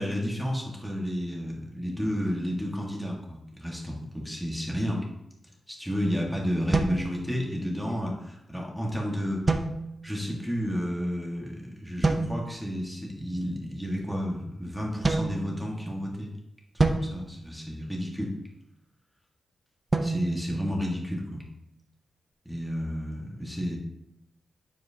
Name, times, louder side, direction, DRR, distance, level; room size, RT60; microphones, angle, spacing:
voice 1, 0.0-5.0 5.7-9.4 10.0-16.3 16.9-18.3 20.0-21.5 22.4-23.8, equal, ahead, -2 dB, 1.6 m, -31 dB
sound 1, 6.7-7.8 9.5-10.3 12.0-12.7 15.0-16.1 16.8-18.3 19.9-21.4, right 3 dB, 25° right, 0.7 m, -29 dB
9.3 x 7.3 x 2.8 m, 0.85 s
cardioid pair, 90°, 0 cm